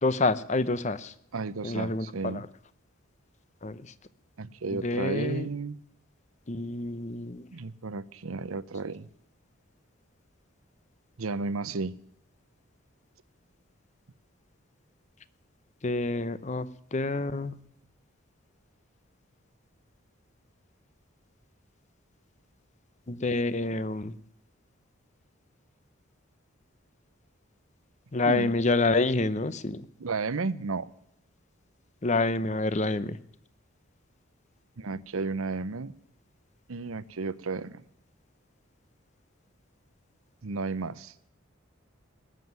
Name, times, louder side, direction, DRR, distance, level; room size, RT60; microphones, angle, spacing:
voice 1, 0.0-1.1 1.6-2.5 3.6-3.8 4.7-5.5 6.5-7.5 15.8-17.6 23.1-24.2 28.1-29.9 32.0-33.2, left 2 dB, 35° left, 15 dB, 0.7 m, -28 dB
voice 2, 1.3-2.5 4.4-5.8 7.5-9.1 11.2-12.0 28.2-28.5 30.0-30.9 34.8-35.9 36.7-37.8 40.4-41.1, right 4 dB, 85° right, 17 dB, 0.7 m, -33 dB
20.0 x 7.5 x 9.4 m, 0.72 s
head